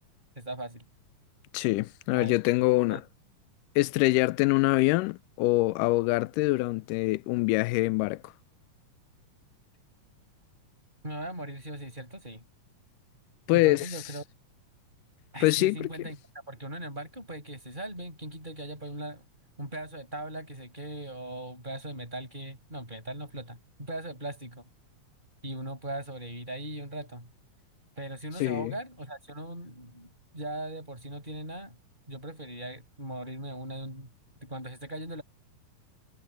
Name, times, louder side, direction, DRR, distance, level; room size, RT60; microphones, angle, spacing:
voice 1, 0.4-0.8 2.1-2.4 2.9-3.1 11.0-12.4 13.5-14.2 15.3-16.2 16.5-19.2 19.6-24.7 25.4-27.3 28.0-31.8 32.1-34.1 34.4-35.2, right 1 dB, 15° right, 6.3 m, -39 dB
voice 2, 1.5-3.0 3.8-8.2 13.5-13.9 15.4-15.9 28.4-28.7, left 20 dB, 85° left, 2.1 m, -24 dB
omnidirectional pair, 3.8 m